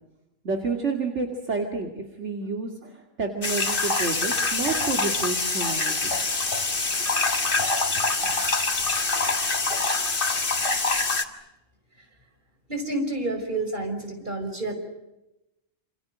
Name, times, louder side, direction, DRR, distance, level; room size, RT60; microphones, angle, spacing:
voice 1, 0.4-6.1, right 4 dB, 60° right, 3 dB, 2.8 m, -30 dB
sound 1, 3.4-11.2, left 3 dB, 45° left, 2.1 m, -25 dB
voice 2, 12.7-14.7, right 2 dB, 40° right, 5 dB, 5.7 m, -29 dB
28.5 x 28.0 x 6.4 m, 0.94 s
omnidirectional pair, 1.3 m